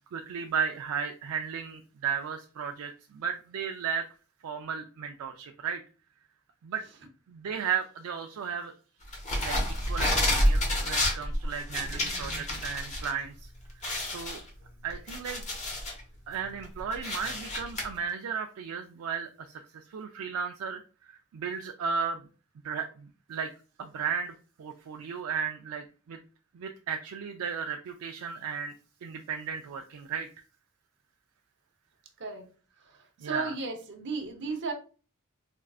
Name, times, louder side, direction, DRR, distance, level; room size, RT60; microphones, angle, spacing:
voice 1, 0.1-4.1 4.4-5.8 6.6-6.8 7.3-8.7 9.4-9.6 9.9-13.5 14.0-14.4 14.8-15.5 16.3-22.2 22.6-23.5 23.8-26.2 26.5-28.7 29.0-30.3 33.2-33.5, right 6 dB, 70° right, 4 dB, 0.3 m, -35 dB
sound 1, 9.1-13.1 13.4-13.5 13.8-16.0 16.5-17.8, left 1 dB, 30° left, 1.0 m, -29 dB
voice 2, 33.2-34.7, right 3 dB, 55° right, 4 dB, 0.8 m, -34 dB
4.4 x 2.4 x 2.3 m, 0.37 s
head